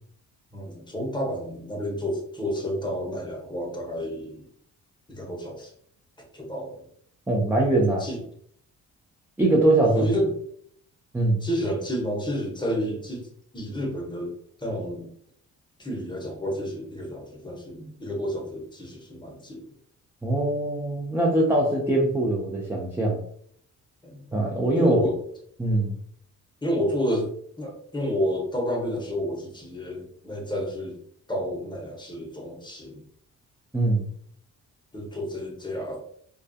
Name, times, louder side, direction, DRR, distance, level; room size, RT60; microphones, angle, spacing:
voice 1, 0.5-4.5 5.1-5.7 6.3-6.9 7.8-8.2 9.8-10.3 11.4-13.3 13.5-14.3 14.6-15.1 15.8-19.7 24.0-24.2 24.7-25.2 26.6-27.3 27.6-31.0 31.3-33.1 34.9-36.1, equal, 15° left, -1 dB, 0.8 m, -30 dB
voice 2, 7.3-8.1 9.4-10.1 11.1-11.4 20.2-23.2 24.3-25.0 25.6-26.0 33.7-34.0, right 2 dB, 5° right, -3 dB, 0.4 m, -22 dB
2.3 x 2.2 x 2.6 m, 0.64 s
cardioid pair, 90°, 30 cm